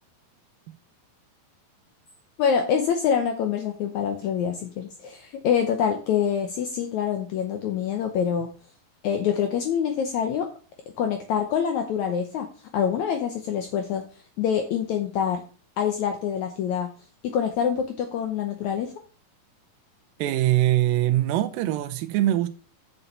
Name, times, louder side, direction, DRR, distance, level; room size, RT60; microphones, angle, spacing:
voice 1, 2.4-8.5 9.0-10.5 11.0-12.5 12.7-14.0 14.4-15.4 15.8-16.9 17.2-18.9, left 8 dB, 75° left, 1.8 m, -25 dB
voice 2, 20.2-22.5, right 14 dB, 80° right, 2.2 m, -22 dB
6.9 x 6.8 x 5.6 m
omnidirectional pair, 4.2 m